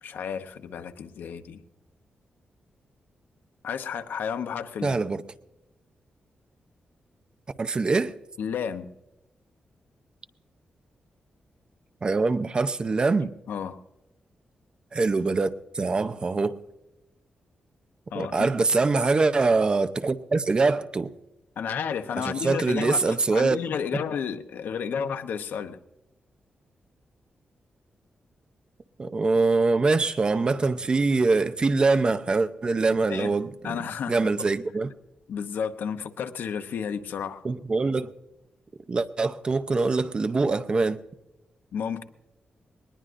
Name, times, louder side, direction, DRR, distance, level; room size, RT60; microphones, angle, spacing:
voice 1, 0.0-1.6 3.6-5.0 8.4-8.9 13.5-13.8 18.1-18.5 21.6-25.8 33.1-33.3 33.6-34.3 35.3-37.4 41.7-42.0, left 7 dB, 90° left, 0.9 m, -32 dB
voice 2, 4.8-5.2 7.6-8.1 12.0-13.3 14.9-16.6 18.1-21.1 22.2-23.6 23.9-24.0 29.0-33.8 34.1-34.9 37.4-38.1 38.9-41.0, right 3 dB, 30° right, 0.6 m, -24 dB
20.5 x 20.0 x 2.6 m
wide cardioid pair, 160°, 3 cm